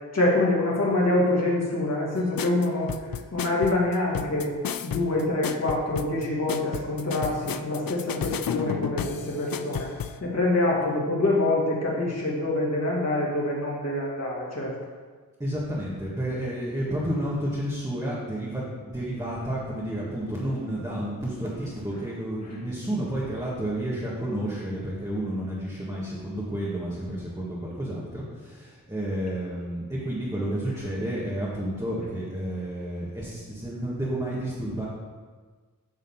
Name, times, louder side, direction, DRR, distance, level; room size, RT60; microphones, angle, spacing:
voice 1, 0.1-2.9 3.3-4.5 4.8-9.9 10.2-14.7, left 2 dB, 45° left, -5 dB, 2.2 m, -25 dB
sound 1, 2.4-10.2, left 8 dB, 75° left, 0.5 m, -33 dB
voice 2, 15.4-34.9, right 1 dB, 10° right, -7 dB, 1.8 m, -31 dB
9.5 x 4.0 x 7.2 m, 1.5 s
wide cardioid pair, 85°, 35 cm